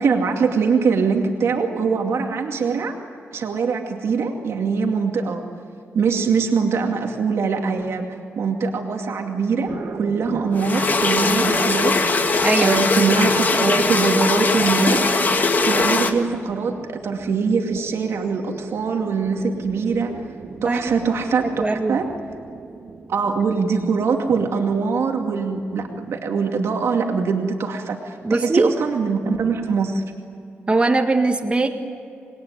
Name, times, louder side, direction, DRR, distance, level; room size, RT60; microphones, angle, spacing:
voice 1, 0.0-3.0 3.3-5.4 5.9-8.1 8.4-9.7 10.0-12.3 12.6-15.0 15.7-20.1 20.6-22.0 23.1-30.0, right 5 dB, 80° right, 2 dB, 2.4 m, -22 dB
sound 1, 9.7-26.0, right 4 dB, 65° right, 1.9 m, -35 dB
sound 2, 10.6-16.1, left 3 dB, 40° left, 1.8 m, -20 dB
voice 2, 12.4-12.8 20.7-21.0 21.6-22.0 28.2-28.7 30.7-31.7, right 3 dB, 25° right, 4 dB, 1.6 m, -20 dB
27.0 x 20.5 x 9.6 m, 2.4 s
wide cardioid pair, 130°, 5 cm